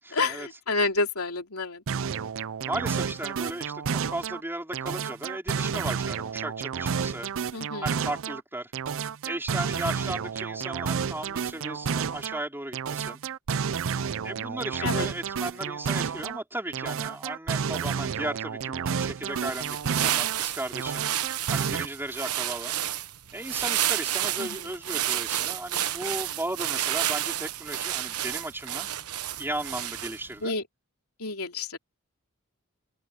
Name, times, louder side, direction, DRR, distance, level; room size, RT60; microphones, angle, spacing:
voice 1, 0.1-1.8 7.5-7.9 14.8-15.1 24.4-24.6 30.4-30.6 31.2-31.8, left 3 dB, 75° left, 3.3 m, -29 dB
sound 1, 1.9-4.4 4.7-8.4 8.7-12.4 12.7-16.4 16.7-20.4 20.7-21.8, right 6 dB, 65° right, 0.5 m, -31 dB
voice 2, 2.7-7.3 7.8-8.7 9.2-13.2 14.2-21.1 21.5-22.8 23.3-28.9 29.4-30.5, right 1 dB, 10° right, 4.2 m, -35 dB
sound 2, 19.3-30.3, right 12 dB, 90° right, 1.1 m, -30 dB
open air
head